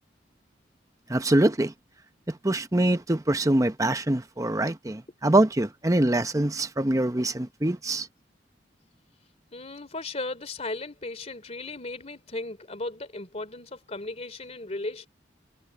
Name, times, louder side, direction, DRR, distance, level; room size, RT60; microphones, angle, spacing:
voice 1, 1.1-1.7 2.3-8.1, right 1 dB, 15° right, 0.8 m, -24 dB
voice 2, 9.5-15.1, left 2 dB, 35° left, 3.0 m, -36 dB
head